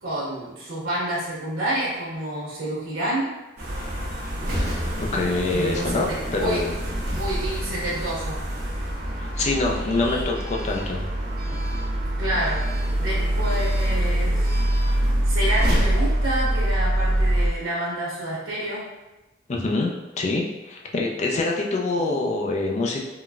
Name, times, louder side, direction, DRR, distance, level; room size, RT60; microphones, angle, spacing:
voice 1, 0.0-3.3 5.5-6.6 7.1-8.4 9.7-10.4 12.2-12.7 13.0-14.6 15.2-18.8 22.0-22.3, right 1 dB, 85° right, -6 dB, 1.0 m, -29 dB
sound 1, 3.6-17.5, right 1 dB, 55° right, 0.7 m, -25 dB
voice 2, 5.0-6.8 9.2-11.1 19.5-23.0, left 3 dB, 35° left, 0 dB, 0.4 m, -25 dB
3.8 x 2.1 x 2.3 m, 1.0 s
head